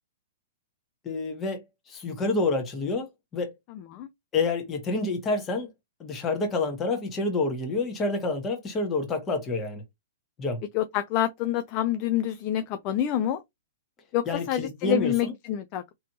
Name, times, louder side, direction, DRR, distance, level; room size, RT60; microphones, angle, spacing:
voice 1, 1.0-3.5 4.3-5.7 6.0-9.8 10.4-10.6 14.2-15.3, left 3 dB, 20° left, 1.4 m, -28 dB
voice 2, 10.7-13.4 14.1-15.9, left 11 dB, 40° left, 0.4 m, -27 dB
3.2 x 3.0 x 2.8 m
hypercardioid pair, 115°, 0 cm